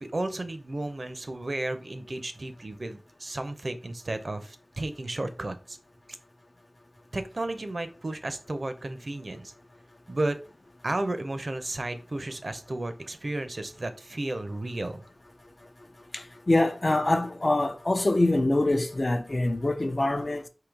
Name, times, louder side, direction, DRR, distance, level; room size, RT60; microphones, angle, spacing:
voice 1, 0.0-5.8 7.1-9.5 10.1-10.4 10.8-15.0, right 2 dB, 55° right, 0.6 m, -33 dB
voice 2, 16.1-20.5, left 2 dB, 40° left, 0.6 m, -25 dB
3.9 x 2.8 x 4.5 m
wide cardioid pair, 60°, 0 cm